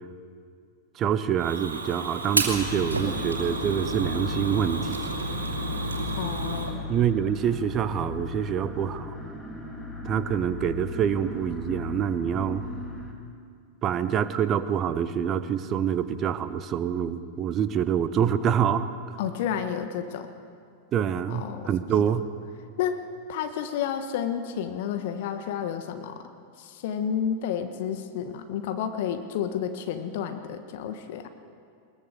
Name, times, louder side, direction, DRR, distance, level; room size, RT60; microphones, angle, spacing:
voice 1, 0.9-5.1 6.9-9.1 10.0-12.6 13.8-18.9 20.9-22.3, right 8 dB, 30° right, 12 dB, 1.1 m, -26 dB
Fire, 1.4-6.7, right 3 dB, 80° right, 2.8 m, -31 dB
sound 1, 2.5-13.1, left 3 dB, 5° left, 3.1 m, -36 dB
voice 2, 6.2-6.8 19.2-20.3 21.3-21.7 22.8-23.0 23.3-26.2 26.6-31.3, left 8 dB, 50° left, 8 dB, 1.4 m, -31 dB
21.5 x 21.0 x 6.7 m, 2.3 s
figure-of-eight pair, 90°, 0 cm